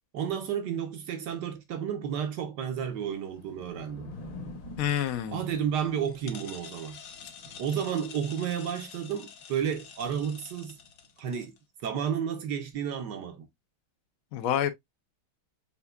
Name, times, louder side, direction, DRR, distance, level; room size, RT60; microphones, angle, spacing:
voice 1, 0.1-4.1 5.3-7.0 7.6-10.8 11.2-11.5 11.8-13.5, right 8 dB, 65° right, 1.1 m, -32 dB
Thunder / Rain, 2.7-11.1, left 2 dB, 45° left, 1.2 m, -49 dB
sound 1, 4.1-11.6, left 7 dB, 65° left, 1.2 m, -49 dB
voice 2, 4.8-5.4 14.3-14.7, left 10 dB, 85° left, 0.7 m, -27 dB
6.7 x 2.7 x 2.3 m
omnidirectional pair, 2.4 m